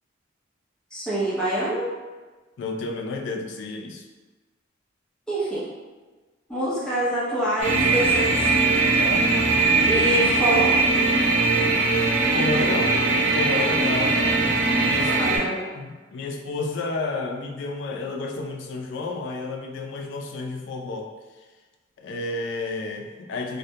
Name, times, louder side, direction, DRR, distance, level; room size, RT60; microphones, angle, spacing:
voice 1, 0.9-1.9 5.3-5.7 6.5-8.3 9.9-10.8 15.1-15.5, right 1 dB, 5° left, -10 dB, 0.6 m, -25 dB
voice 2, 2.6-4.0 9.0-9.3 12.3-13.0 13.3-14.2 14.8-21.1 22.0-23.6, left 3 dB, 65° left, 3 dB, 0.3 m, -31 dB
sound 1, 7.6-15.4, right 3 dB, 70° right, 0.6 m, -20 dB
2.2 x 2.1 x 2.7 m, 1.3 s
head